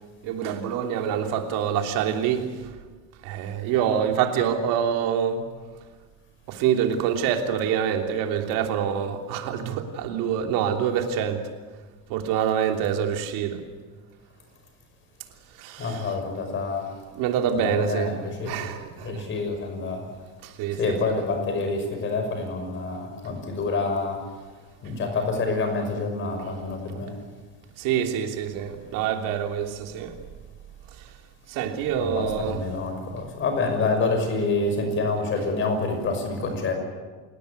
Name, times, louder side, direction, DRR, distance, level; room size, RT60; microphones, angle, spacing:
voice 1, 0.2-2.7 3.2-5.4 6.5-11.5 12.1-13.6 15.5-16.2 17.1-18.2 18.4-19.3 20.4-21.2 26.4-26.6 26.9-27.1 27.8-30.2 30.9-31.1 31.5-32.7, right 8 dB, 80° right, 3.2 m, -26 dB
voice 2, 15.8-16.9 17.5-18.5 19.0-20.0 20.8-24.2 24.8-27.2 32.0-36.7, left 3 dB, 35° left, 5.9 m, -27 dB
28.0 x 18.5 x 8.4 m
cardioid pair, 160°, 33 cm